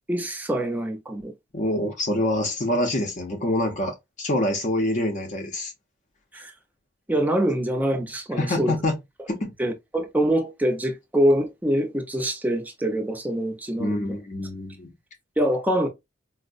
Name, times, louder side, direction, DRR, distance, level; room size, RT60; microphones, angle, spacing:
voice 1, 0.1-1.3 6.3-6.5 7.1-8.8 9.6-14.2 15.4-15.9, right 1 dB, 10° right, 0.5 m, -24 dB
voice 2, 1.5-5.7 8.4-8.9 9.3-9.5 13.8-14.9, left 1 dB, 40° left, 0.6 m, -26 dB
4.3 x 2.0 x 2.4 m
head